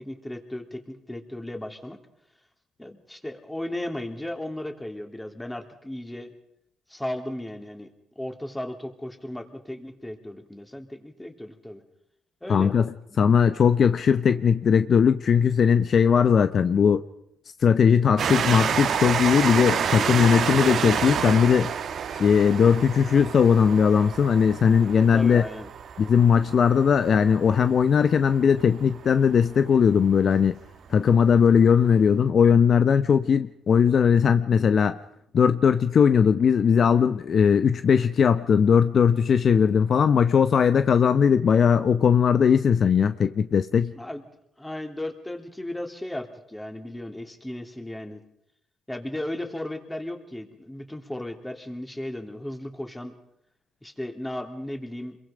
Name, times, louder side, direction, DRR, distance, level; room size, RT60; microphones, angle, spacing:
voice 1, 0.0-2.0 2.8-6.3 6.9-7.9 8.2-11.8 12.4-12.7 25.1-25.7 43.9-44.2 44.6-48.2 48.9-53.1 53.8-55.2, left 1 dB, 10° left, 5 dB, 3.0 m, -35 dB
voice 2, 12.5-12.9 13.2-17.0 17.6-21.7 22.1-25.4 26.0-30.6 30.9-35.0 35.3-43.9, left 7 dB, 55° left, 11 dB, 0.8 m, -19 dB
Train, 18.2-29.4 30.1-30.2 30.4-30.5, right 7 dB, 60° right, 1.4 m, -29 dB
27.0 x 22.5 x 5.1 m, 0.75 s
cardioid pair, 90°, 0 cm